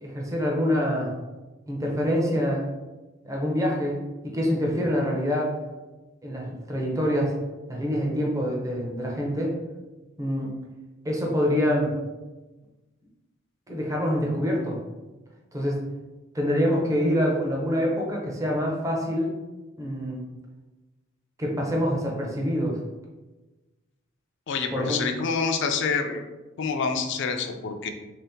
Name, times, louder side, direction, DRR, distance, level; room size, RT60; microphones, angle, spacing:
voice 1, 0.0-1.1 1.7-2.7 3.2-5.6 6.2-7.4 7.7-9.6 10.2-10.5 11.0-11.9 13.7-14.8 15.5-15.8 16.3-19.3 19.8-20.2 21.4-22.8 24.7-25.0, equal, 15° right, -1 dB, 0.6 m, -26 dB
voice 2, 24.5-26.2 26.6-27.9, left 5 dB, 60° left, 5 dB, 0.4 m, -27 dB
3.4 x 2.8 x 3.4 m, 1.2 s
head